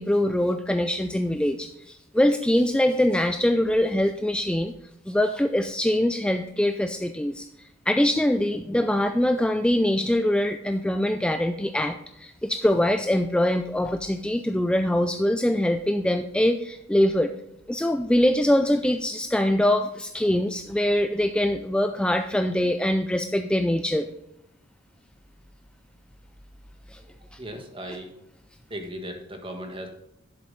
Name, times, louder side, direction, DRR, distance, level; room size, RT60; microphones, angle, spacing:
voice 1, 0.0-4.7 5.1-7.5 7.9-17.3 17.7-24.1 26.9-27.0, left 1 dB, 5° left, 7 dB, 0.4 m, -23 dB
voice 2, 26.9-28.2 28.7-29.9, equal, 25° right, 4 dB, 1.6 m, -37 dB
11.0 x 7.5 x 4.1 m, 0.84 s
head